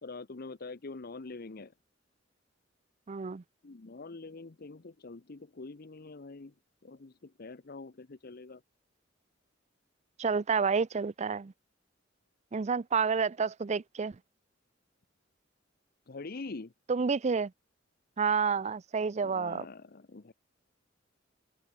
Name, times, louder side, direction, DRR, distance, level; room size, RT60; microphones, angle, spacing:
voice 1, 0.0-1.7 3.6-6.5 6.8-8.6 16.1-16.7 19.2-20.3, left 3 dB, 50° left, 0.8 m, -44 dB
voice 2, 3.1-3.4 10.2-11.5 12.5-14.2 16.9-17.5 18.2-19.6, right 5 dB, 35° right, 0.5 m, -29 dB
head